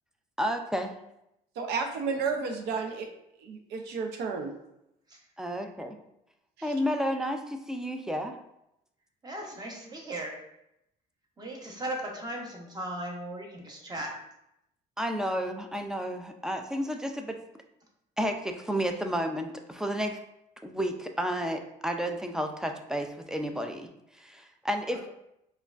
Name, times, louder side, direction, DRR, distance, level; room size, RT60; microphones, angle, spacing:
voice 1, 0.4-0.9 5.4-6.0 6.6-8.4 15.0-17.4 18.2-20.2 20.6-23.9 24.2-25.1, equal, 5° right, 4 dB, 0.3 m, -31 dB
voice 2, 1.6-3.1 3.4-4.5 6.6-6.7, right 5 dB, 80° right, 4 dB, 0.6 m, -32 dB
voice 3, 9.2-10.4 11.4-14.1, right 1 dB, 25° right, 0 dB, 0.9 m, -37 dB
4.7 x 2.2 x 2.4 m, 0.83 s
cardioid pair, 110°, 17 cm